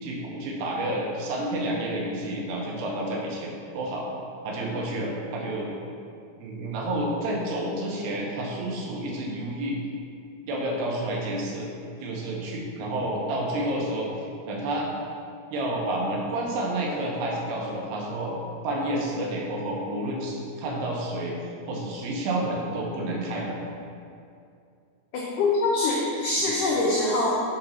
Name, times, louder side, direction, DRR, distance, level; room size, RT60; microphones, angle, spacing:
voice 1, 0.0-4.1 4.4-5.7 6.4-9.8 10.5-11.7 12.0-14.1 14.5-14.9 15.5-18.4 18.6-23.6 26.4-26.5, right 1 dB, 85° right, -2 dB, 3.2 m, -30 dB
voice 2, 25.1-27.4, left 2 dB, 85° left, -3 dB, 1.8 m, -24 dB
7.5 x 3.8 x 5.7 m, 2.4 s
omnidirectional pair, 4.6 m